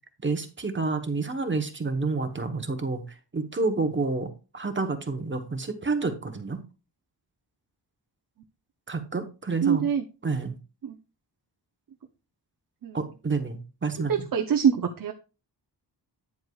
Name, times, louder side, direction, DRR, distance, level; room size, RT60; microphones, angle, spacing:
voice 1, 0.2-6.6 8.9-9.9 10.2-10.6 12.9-14.3, right 3 dB, 25° right, 1.0 m, -29 dB
voice 2, 9.6-10.0 10.8-10.9 12.8-13.0 14.1-15.1, right 7 dB, 50° right, 0.7 m, -24 dB
9.3 x 7.9 x 2.3 m
wide cardioid pair, 125°, 43 cm